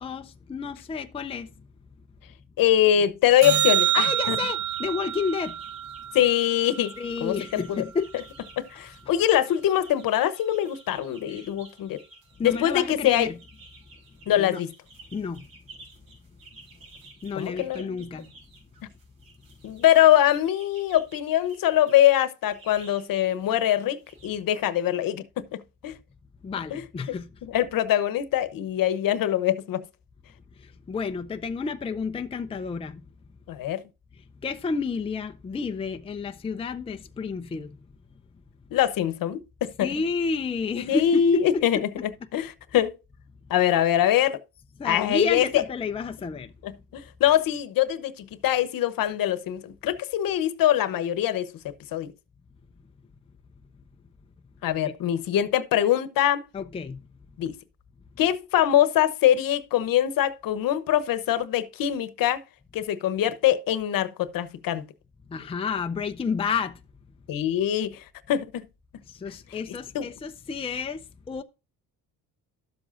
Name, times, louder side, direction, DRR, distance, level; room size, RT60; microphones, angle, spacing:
voice 1, 0.0-1.5 3.8-5.6 7.0-8.2 11.3-11.4 12.4-13.4 14.4-14.6 15.1-15.5 17.2-18.3 26.4-27.3 30.6-33.0 34.4-37.8 39.8-41.8 44.8-46.5 54.8-54.9 56.5-57.0 65.3-66.8 69.1-71.4, left 5 dB, 15° left, 0.5 m, -30 dB
voice 2, 2.6-4.4 6.1-7.8 8.6-12.0 12.4-13.3 14.3-14.7 17.4-18.0 19.6-26.0 26.7-26.8 27.4-29.8 33.5-33.8 38.7-39.9 40.8-42.9 43.5-44.4 44.8-45.6 46.6-51.5 51.9-52.1 54.6-56.4 57.4-57.5 58.2-62.4 62.7-64.8 67.3-68.0 68.3-68.7 69.9-70.1, left 11 dB, 65° left, 1.0 m, -23 dB
sound 1, 3.4-7.9 14.4-14.5, right 13 dB, 45° right, 1.2 m, -28 dB
sound 2, 4.6-24.3, right 3 dB, 70° right, 5.1 m, -53 dB
12.0 x 7.6 x 2.5 m
cardioid pair, 130°, 37 cm